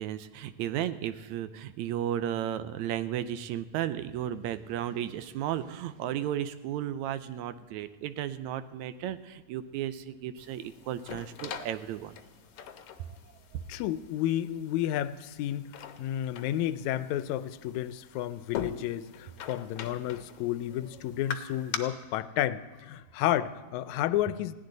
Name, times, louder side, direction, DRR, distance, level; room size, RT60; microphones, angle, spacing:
voice 1, 0.0-12.2 12.6-12.7 13.0-13.1 13.5-13.6, right 11 dB, 80° right, 2.0 m, -34 dB
sound 1, 10.4-21.8, left 8 dB, 65° left, 1.7 m, -43 dB
voice 2, 13.7-15.7 16.0-24.5, left 12 dB, 80° left, 1.9 m, -31 dB
20.0 x 16.5 x 4.0 m
omnidirectional pair, 3.3 m